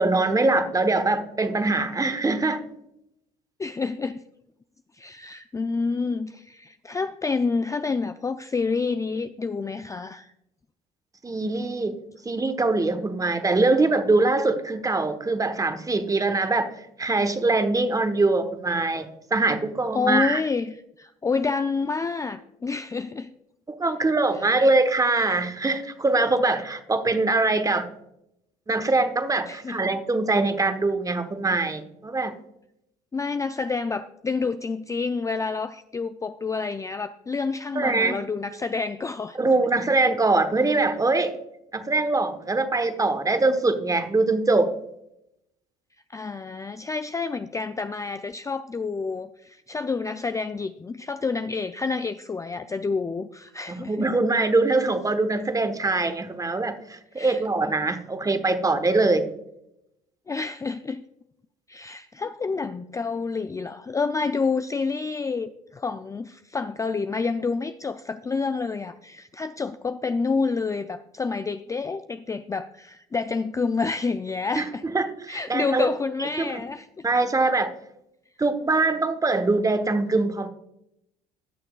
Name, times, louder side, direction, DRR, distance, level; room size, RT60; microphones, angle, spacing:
voice 1, 0.0-2.6 11.2-12.0 12.2-16.7 17.0-20.4 23.8-27.9 28.7-32.3 37.7-38.2 39.3-41.3 41.7-44.7 53.7-59.2 74.6-74.7 74.9-75.9 76.2-76.6 77.0-77.7 78.4-80.5, right 3 dB, 20° right, 9 dB, 1.1 m, -23 dB
voice 2, 3.6-4.2 5.0-10.3 19.9-23.3 29.5-29.8 33.1-39.5 46.1-54.0 57.1-57.4 60.3-61.0 61.7-74.8 75.3-77.1, left 4 dB, 15° left, 10 dB, 0.4 m, -28 dB
18.5 x 6.6 x 2.3 m, 0.82 s
hypercardioid pair, 60°, 18 cm